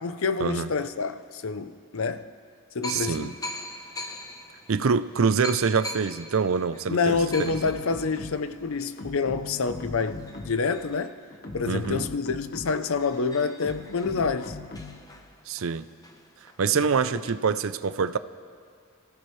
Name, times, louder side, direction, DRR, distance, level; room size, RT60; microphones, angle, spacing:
voice 1, 0.0-2.3 2.7-3.3 6.9-11.2 11.5-14.5, left 4 dB, 70° left, 0.6 m, -27 dB
sound 1, 2.8-12.0 12.4-12.5 12.7-17.3, left 1 dB, 15° left, 0.8 m, -43 dB
voice 2, 2.9-3.3 4.7-7.5 11.6-12.0 15.5-15.9 16.6-18.2, right 5 dB, 70° right, 0.5 m, -25 dB
sound 2, 7.1-8.6 9.0-10.8 11.3-13.0 13.6-15.1, left 3 dB, 45° left, 1.2 m, -40 dB
28.5 x 15.5 x 3.2 m
head